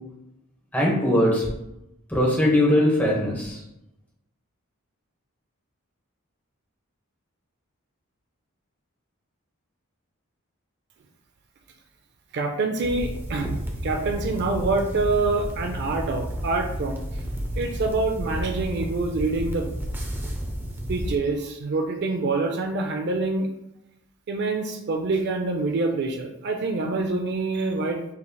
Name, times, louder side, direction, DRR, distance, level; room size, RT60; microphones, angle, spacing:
voice 1, 0.7-1.4 2.1-3.6, left 1 dB, 10° left, -3 dB, 1.1 m, -20 dB
voice 2, 12.3-17.0 17.6-19.7 20.9-23.5 24.3-28.1, right 3 dB, 55° right, 4 dB, 0.5 m, -26 dB
sound 1, 12.8-21.2, equal, 10° right, 0.6 m, -31 dB
5.5 x 3.2 x 2.3 m, 0.86 s
head